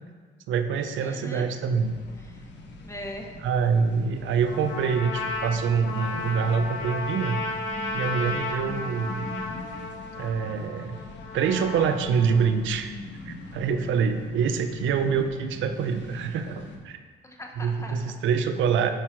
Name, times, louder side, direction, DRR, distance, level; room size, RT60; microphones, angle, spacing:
voice 1, 0.5-1.9 3.4-7.4 7.9-9.3 10.2-11.0 11.3-12.9 13.3-17.0 17.6-18.9, right 6 dB, 75° right, 8 dB, 0.5 m, -25 dB
voice 2, 1.0-1.5 2.1-2.5 2.8-3.3 17.2-18.1, left 1 dB, 15° left, 2 dB, 1.0 m, -40 dB
sound 1, 1.7-16.8, left 2 dB, 65° left, 1.0 m, -42 dB
Trumpet, 4.4-12.5, left 3 dB, 85° left, 0.8 m, -34 dB
6.2 x 4.7 x 4.4 m, 1.6 s
cardioid pair, 90°, 20 cm